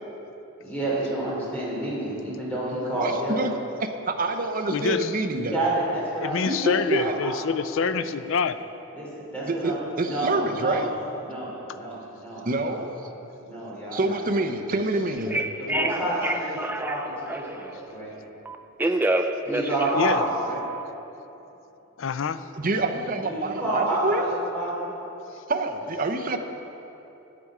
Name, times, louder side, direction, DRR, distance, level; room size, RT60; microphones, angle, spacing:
voice 1, 0.6-3.5 5.3-6.3 6.6-7.3 7.9-8.0 8.9-10.8 11.2-12.8 13.4-14.2 15.6-18.1 19.4-20.6 23.2-24.9, right 1 dB, 5° left, -7 dB, 2.9 m, -29 dB
voice 2, 2.9-3.5 4.1-5.5 6.4-7.1 9.5-10.9 12.4-13.0 13.9-15.5 22.6-24.2 25.5-26.4, right 2 dB, 40° right, 5 dB, 0.7 m, -27 dB
voice 3, 4.7-5.1 6.2-8.6 20.0-20.2 22.0-22.4, left 5 dB, 60° left, 12 dB, 0.4 m, -26 dB
Telephone, 15.2-17.7 18.5-20.8, right 2 dB, 10° right, 0.3 m, -28 dB
14.0 x 8.7 x 4.8 m, 3.0 s
head